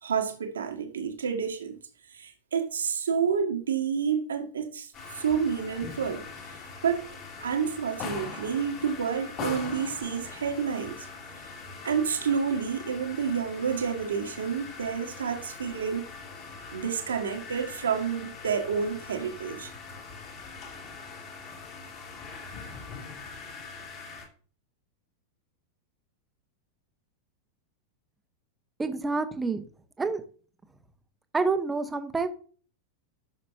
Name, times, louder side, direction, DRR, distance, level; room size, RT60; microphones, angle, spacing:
voice 1, 0.0-1.8 2.1-6.3 6.8-7.1 7.4-11.1 11.4-11.5 11.8-16.1 16.7-19.7, right 6 dB, 70° right, 1.6 m, -29 dB
sound 1, 4.9-24.3, left 4 dB, 35° left, 2.9 m, -42 dB
voice 2, 28.8-29.6 30.0-30.2 31.3-32.3, right 4 dB, 10° right, 1.1 m, -28 dB
11.5 x 6.7 x 2.7 m
figure-of-eight pair, 90°, 0 cm